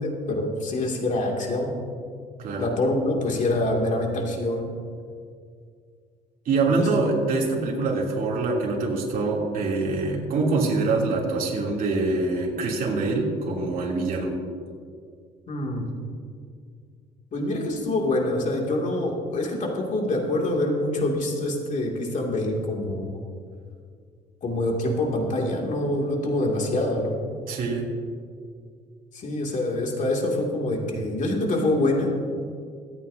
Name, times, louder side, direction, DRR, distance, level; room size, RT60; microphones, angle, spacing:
voice 1, 0.0-1.9 2.6-4.8 6.7-6.9 15.5-15.8 17.3-23.2 24.4-27.1 29.1-32.1, left 1 dB, 45° left, 0 dB, 2.5 m, -25 dB
voice 2, 2.4-2.7 6.4-14.3 27.5-27.9, right 3 dB, 55° right, -3 dB, 3.0 m, -25 dB
24.5 x 8.8 x 2.8 m, 2.2 s
cardioid pair, 110°, 17 cm